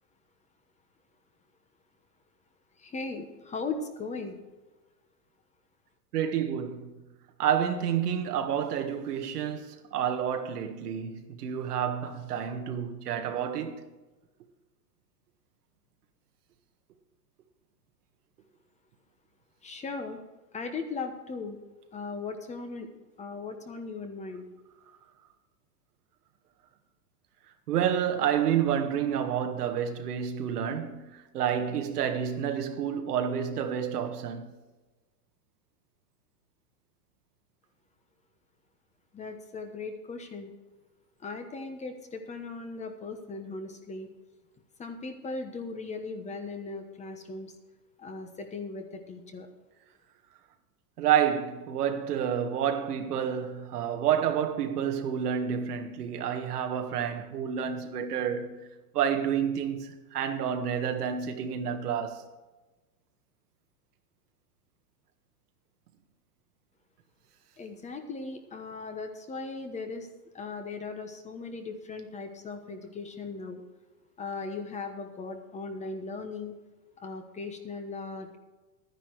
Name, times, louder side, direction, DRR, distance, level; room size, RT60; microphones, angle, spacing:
voice 1, 2.8-4.4 19.6-20.2 20.5-21.6 21.9-22.9 23.2-24.5 39.1-40.5 41.2-44.1 44.8-47.5 48.0-49.5 67.6-70.1 70.3-73.6 74.2-76.5 77.0-78.4, left 4 dB, 15° left, 1.1 m, -38 dB
voice 2, 6.1-7.0 7.4-13.8 27.7-34.5 51.0-58.5 58.9-62.2, right 8 dB, 85° right, 1.7 m, -29 dB
12.0 x 10.0 x 4.7 m
supercardioid pair, 145°, 45 cm